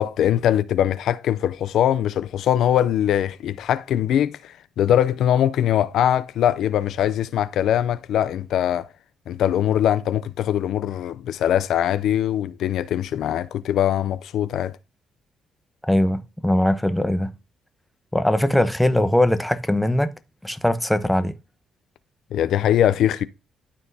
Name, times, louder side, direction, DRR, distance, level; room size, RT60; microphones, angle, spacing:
voice 1, 0.0-8.9 9.3-14.8 22.3-23.2, left 10 dB, 75° left, 0.4 m, -22 dB
voice 2, 15.8-17.3 18.1-20.1 20.4-21.3, left 1 dB, 5° left, 0.8 m, -20 dB
12.5 x 4.3 x 2.7 m
cardioid pair, 90°, 0 cm